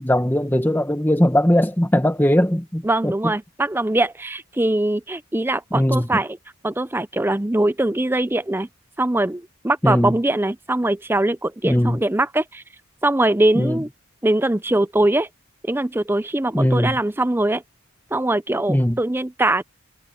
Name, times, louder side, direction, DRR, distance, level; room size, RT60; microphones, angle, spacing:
voice 1, 0.0-3.3 5.7-6.2 9.8-10.2 11.6-12.0 13.5-13.8 16.5-17.0 18.7-19.0, equal, 10° left, 1.2 m, -19 dB
voice 2, 2.8-6.4 6.6-8.7 9.0-12.6 13.0-13.9 14.2-15.3 15.6-17.6 18.1-19.6, right 1 dB, 10° right, 0.5 m, -22 dB
head